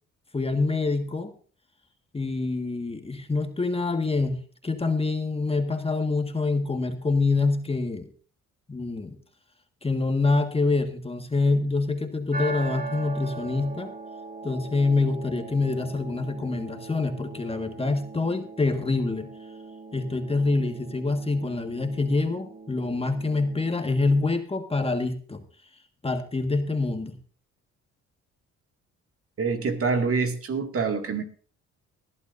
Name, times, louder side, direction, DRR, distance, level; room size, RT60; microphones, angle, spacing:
voice 1, 0.3-1.3 2.1-8.1 8.7-9.2 9.8-13.9 14.4-19.3 19.9-25.4 26.0-27.1, left 3 dB, 20° left, 6 dB, 1.7 m, -26 dB
sound 1, 12.3-24.3, right 4 dB, 30° right, 2.0 m, -40 dB
voice 2, 29.4-31.2, right 4 dB, 50° right, 6 dB, 2.3 m, -26 dB
20.5 x 11.5 x 2.7 m, 0.41 s
cardioid pair, 90°, 30 cm